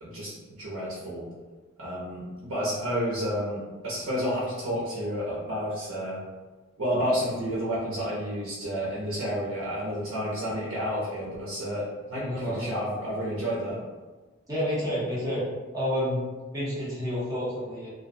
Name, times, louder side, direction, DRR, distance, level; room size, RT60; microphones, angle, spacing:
voice 1, 0.0-0.3 0.6-1.3 1.8-6.2 6.8-13.8, equal, 85° right, -6 dB, 0.6 m, -30 dB
voice 2, 12.2-12.7 14.5-15.4 15.7-16.2 16.5-17.9, equal, 20° right, -9 dB, 0.8 m, -29 dB
2.4 x 2.1 x 2.6 m, 1.3 s
head